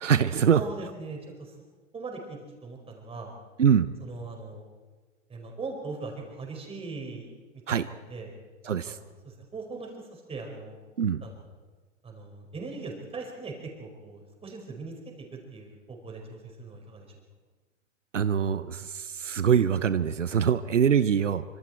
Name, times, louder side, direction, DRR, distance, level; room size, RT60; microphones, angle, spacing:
voice 1, 0.0-0.6 3.6-3.9 7.7-7.9 8.7-9.0 11.0-11.2 18.1-21.4, right 8 dB, 80° right, 14 dB, 0.8 m, -23 dB
voice 2, 0.5-1.6 1.9-3.3 4.0-4.7 5.3-7.3 7.7-8.3 8.8-10.8 11.2-11.4 12.0-17.1, right 3 dB, 15° right, 1 dB, 5.1 m, -40 dB
25.5 x 25.0 x 4.5 m, 1.3 s
figure-of-eight pair, 105°, 36 cm